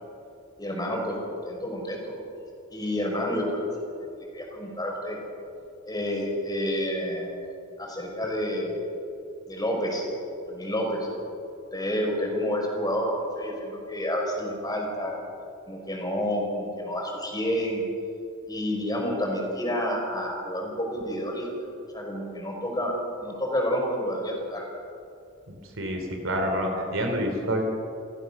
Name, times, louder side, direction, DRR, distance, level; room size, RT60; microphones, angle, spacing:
voice 1, 0.6-2.2 2.7-3.6 4.2-5.2 5.9-7.5 7.8-8.9 9.5-10.1 10.5-11.1 11.7-15.1 15.7-17.8 18.4-21.5 21.9-24.6, equal, 20° left, 0 dB, 5.0 m, -29 dB
voice 2, 25.5-27.6, equal, 65° right, 3 dB, 3.3 m, -28 dB
29.0 x 15.0 x 6.8 m, 2.5 s
head